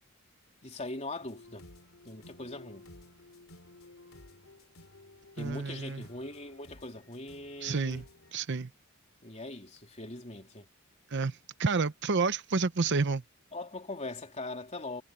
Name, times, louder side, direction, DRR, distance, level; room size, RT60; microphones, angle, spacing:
voice 1, 0.6-1.6 2.1-2.9 5.4-8.0 9.2-10.7 13.5-15.0, left 2 dB, 30° left, 3.5 m, -41 dB
sound 1, 1.2-8.3, left 2 dB, 70° left, 3.2 m, -54 dB
voice 2, 5.4-6.0 7.6-8.0 8.3-8.7 11.1-13.2, right 4 dB, 55° right, 0.8 m, -30 dB
head